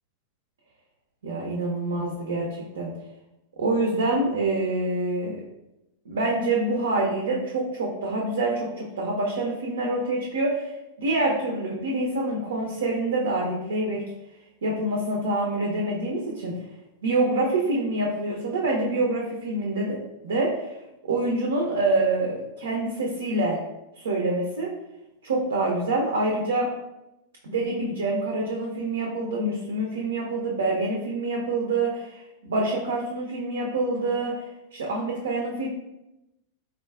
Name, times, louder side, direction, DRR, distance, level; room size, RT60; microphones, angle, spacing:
voice 1, 1.2-2.9 3.6-5.4 6.1-14.0 14.6-16.6 17.0-20.0 20.2-20.7 21.0-23.6 24.0-24.7 25.2-26.7 27.4-34.3 34.7-35.7, right 2 dB, 65° right, -1 dB, 0.4 m, -26 dB
3.7 x 2.3 x 2.3 m, 0.93 s
figure-of-eight pair, 90°, 0 cm